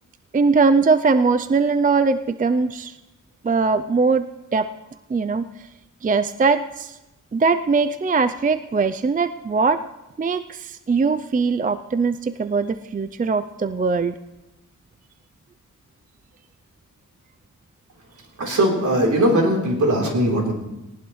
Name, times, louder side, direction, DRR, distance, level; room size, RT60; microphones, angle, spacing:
voice 1, 0.3-2.9 3.4-4.2 4.5-4.7 5.1-5.7 6.0-7.0 7.3-9.8 10.2-14.2, right 4 dB, 25° right, 12 dB, 0.4 m, -21 dB
voice 2, 18.4-20.5, right 1 dB, 65° right, -1 dB, 3.7 m, -19 dB
19.5 x 19.0 x 3.2 m, 0.99 s
wide cardioid pair, 125°, 32 cm